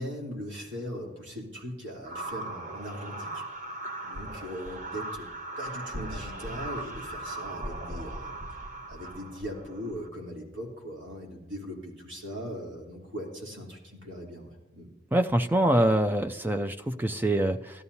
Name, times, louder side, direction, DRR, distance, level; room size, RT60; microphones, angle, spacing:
voice 1, 0.0-3.4 4.0-5.3 5.6-14.9, equal, 70° right, -2 dB, 3.3 m, -40 dB
sound 1, 2.0-10.1, right 1 dB, 40° right, 1.0 m, -38 dB
voice 2, 15.1-17.8, right 1 dB, 10° right, 8 dB, 0.3 m, -25 dB
17.0 x 12.5 x 2.8 m, 1.1 s
head